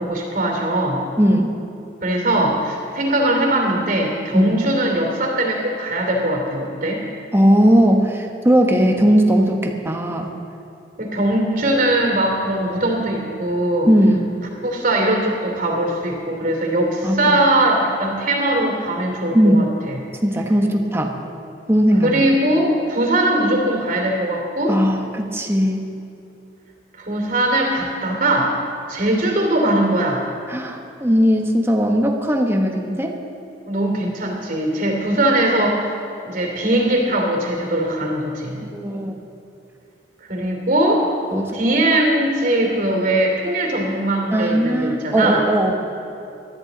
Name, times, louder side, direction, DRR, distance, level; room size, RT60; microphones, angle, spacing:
voice 1, 0.0-1.0 2.0-7.0 11.0-13.9 14.6-20.0 22.0-24.8 27.0-28.6 28.9-30.2 33.7-35.9 36.2-38.6 40.3-41.1 41.5-45.5, right 1 dB, 45° right, 1 dB, 2.8 m, -20 dB
voice 2, 1.2-1.5 4.3-4.5 7.3-10.3 13.9-14.3 17.0-17.4 19.3-19.7 20.2-21.1 21.7-22.2 24.7-25.8 30.5-33.2 38.7-39.2 41.3-41.6 44.3-45.8, equal, 15° right, 2 dB, 1.1 m, -18 dB
20.5 x 13.5 x 4.0 m, 2.7 s
head